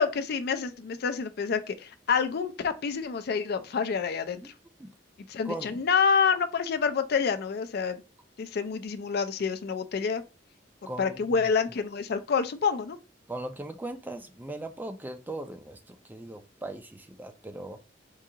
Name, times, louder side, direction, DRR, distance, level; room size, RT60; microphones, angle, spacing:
voice 1, 0.0-4.5 5.3-8.0 8.4-10.2 11.0-13.0, left 6 dB, 55° left, 0.4 m, -27 dB
voice 2, 5.4-5.8 10.9-11.4 13.3-17.8, right 1 dB, 10° right, 0.4 m, -39 dB
4.7 x 2.3 x 2.7 m
head